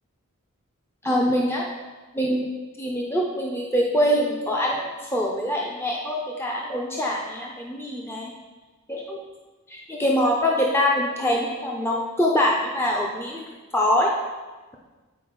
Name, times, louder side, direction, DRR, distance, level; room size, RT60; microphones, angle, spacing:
voice 1, 1.0-1.7 2.1-2.5 2.8-8.3 8.9-9.2 9.7-13.4 13.7-14.1, left 1 dB, 10° left, -2 dB, 0.5 m, -24 dB
9.0 x 4.2 x 4.6 m, 1.2 s
head